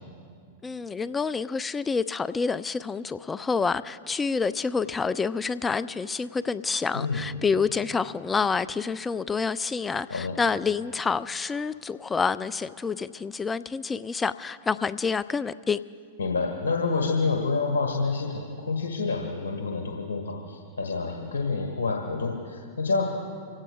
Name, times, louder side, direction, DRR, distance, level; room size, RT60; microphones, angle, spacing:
voice 1, 0.6-15.8, left 5 dB, 15° left, 16 dB, 0.4 m, -28 dB
voice 2, 6.9-7.3 10.1-10.4 16.2-23.0, left 4 dB, 80° left, 0 dB, 1.6 m, -28 dB
27.0 x 16.0 x 2.4 m, 2.2 s
hypercardioid pair, 100°, 0 cm